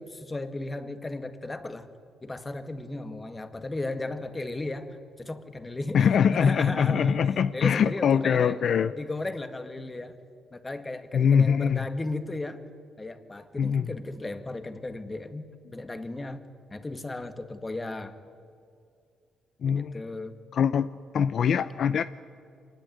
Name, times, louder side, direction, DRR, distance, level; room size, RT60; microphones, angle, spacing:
voice 1, 0.0-1.9 2.2-6.0 6.3-8.6 9.0-10.2 10.5-12.6 13.0-15.4 15.7-16.4 16.7-18.1 19.7-20.4, left 2 dB, 20° left, 9 dB, 1.9 m, -35 dB
voice 2, 5.9-8.9 11.1-11.9 13.6-13.9 19.6-20.0 20.5-20.9 21.1-22.0, left 7 dB, 60° left, 13 dB, 0.6 m, -23 dB
25.0 x 20.0 x 9.3 m, 2.4 s
cardioid pair, 90°, 0 cm